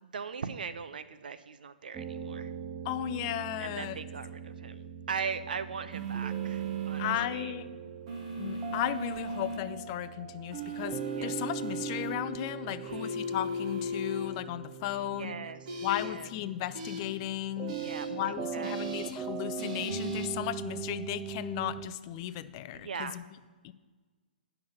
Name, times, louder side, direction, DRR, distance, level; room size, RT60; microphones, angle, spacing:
voice 1, 0.0-2.5 3.6-7.5 11.1-11.3 12.6-13.2 15.0-15.7 16.0-16.3 17.6-19.2 22.7-23.2, right 6 dB, 65° right, 12 dB, 0.6 m, -40 dB
sound 1, 1.9-21.9, right 7 dB, 20° right, 0.5 m, -41 dB
voice 2, 2.8-4.0 7.0-7.7 8.4-15.4 15.8-17.7 18.1-23.2 23.6-23.7, left 13 dB, 35° left, 14 dB, 0.5 m, -35 dB
sound 2, 5.9-7.2 8.1-9.6 10.5-12.1 12.9-14.3 15.7-16.0 16.7-17.0 17.7-18.0 18.6-19.1 19.6-20.3, right 1 dB, 45° right, 1.9 m, -36 dB
9.4 x 5.8 x 6.5 m, 1.4 s
figure-of-eight pair, 125°, 5 cm